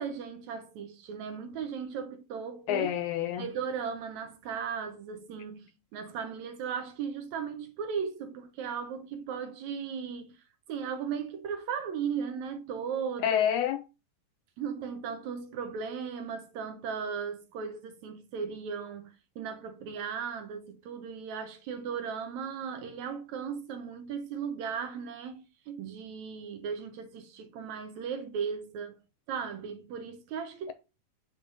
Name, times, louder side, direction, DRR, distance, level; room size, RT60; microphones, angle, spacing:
voice 1, 0.0-2.9 3.4-10.3 10.7-13.4 14.6-29.0 29.3-30.7, right 6 dB, 70° right, 2.0 m, -37 dB
voice 2, 2.7-3.5 13.2-13.8, left 10 dB, 80° left, 1.8 m, -28 dB
6.5 x 5.0 x 3.9 m
omnidirectional pair, 3.8 m